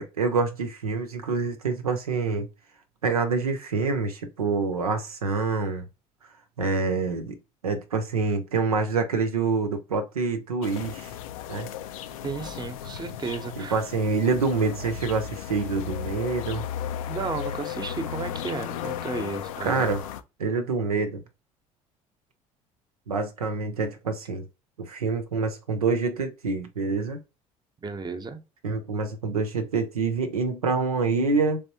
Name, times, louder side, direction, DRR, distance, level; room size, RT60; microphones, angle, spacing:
voice 1, 0.0-2.5 3.0-5.8 6.6-7.4 7.6-11.1 11.5-11.7 13.6-16.7 19.6-20.0 20.4-21.2 23.1-24.5 24.8-27.2 28.6-31.6, right 4 dB, 80° right, 0.6 m, -26 dB
sound 1, 10.6-20.2, left 9 dB, 70° left, 0.4 m, -35 dB
voice 2, 12.2-13.8 17.1-19.9 27.8-28.4, right 4 dB, 25° right, 0.8 m, -33 dB
3.4 x 3.2 x 2.8 m
figure-of-eight pair, 60°, 19 cm